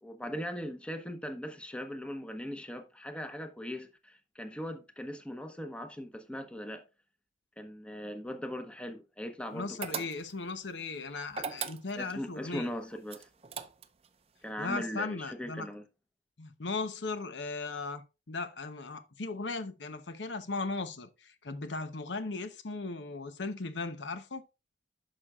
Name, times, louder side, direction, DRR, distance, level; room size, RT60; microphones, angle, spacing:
voice 1, 0.0-6.8 7.6-10.1 12.0-13.3 14.4-15.8, equal, 5° left, 0.8 m, -40 dB
voice 2, 9.5-12.7 14.6-15.7 16.4-24.4, left 3 dB, 80° left, 0.9 m, -37 dB
sound 1, 9.8-10.5 11.3-12.2 13.1-14.1, right 7 dB, 35° right, 0.5 m, -38 dB
11.5 x 5.8 x 2.4 m
head